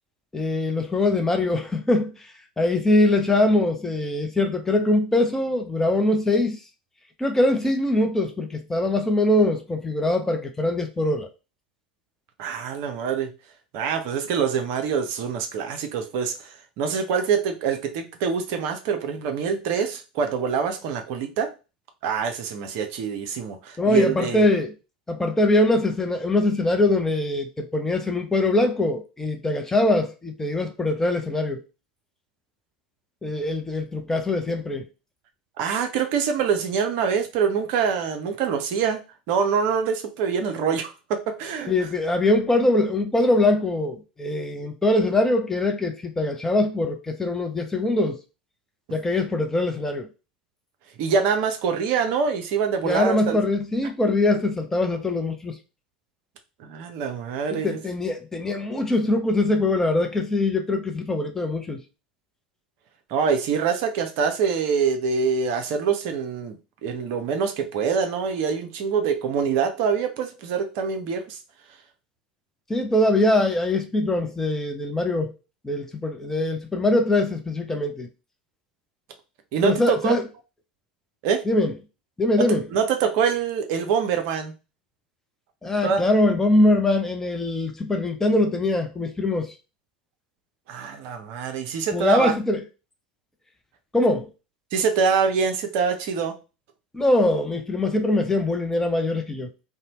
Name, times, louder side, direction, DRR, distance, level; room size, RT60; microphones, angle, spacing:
voice 1, 0.3-2.1 2.6-6.6 7.2-11.3 23.8-24.7 25.1-31.6 33.2-34.9 41.7-48.2 48.9-50.1 52.8-55.6 57.5-61.8 72.7-75.3 75.6-78.1 79.6-80.2 81.5-81.7 82.2-82.6 85.6-89.5 91.9-92.6 93.9-94.3 96.9-99.5, left 2 dB, 10° left, 0.5 m, -22 dB
voice 2, 12.4-13.3 13.7-21.5 22.0-24.4 35.6-39.0 39.3-41.9 51.0-53.4 56.6-57.8 63.1-71.4 79.5-80.1 81.2-81.4 82.4-84.5 85.8-86.0 90.7-92.3 94.7-96.4, right 6 dB, 45° right, 0.5 m, -25 dB
2.7 x 2.1 x 2.8 m
figure-of-eight pair, 80°, 5 cm